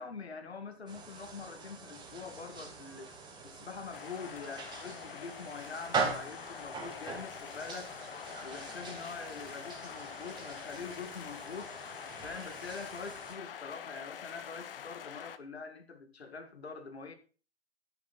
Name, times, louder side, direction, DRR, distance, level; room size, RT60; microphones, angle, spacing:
voice 1, 0.0-3.2 3.4-7.9 8.4-11.7 12.2-17.1, left 5 dB, 85° left, 2.1 m, -44 dB
sound 1, 0.9-13.3, right 4 dB, 15° right, 2.9 m, -42 dB
sound 2, 3.9-15.4, left 9 dB, 60° left, 1.3 m, -46 dB
10.5 x 9.4 x 4.2 m
hypercardioid pair, 125°, 31 cm